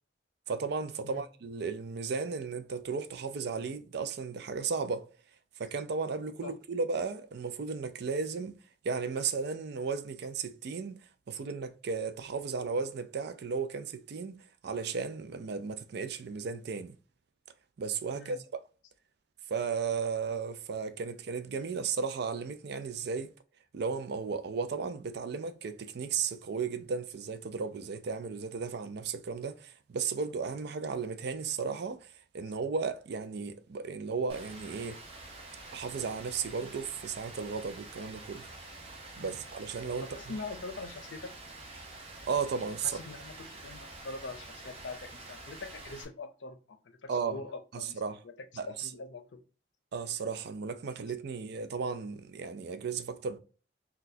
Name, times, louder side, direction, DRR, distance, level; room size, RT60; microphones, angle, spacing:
voice 1, 0.5-5.1 5.6-8.6 8.8-11.0 11.3-14.4 14.6-17.0 17.8-18.6 19.5-23.3 23.7-35.0 35.7-38.5 39.2-40.4 42.3-43.0 47.1-47.4 47.7-48.2 48.6-48.9 49.9-53.4, right 5 dB, 60° right, 0.4 m, -35 dB
Rain, 34.3-46.0, right 2 dB, 35° right, 0.7 m, -47 dB
voice 2, 40.0-41.3 42.8-43.3 43.6-48.3 48.7-49.4, left 3 dB, 75° left, 0.6 m, -43 dB
4.1 x 2.3 x 2.7 m
head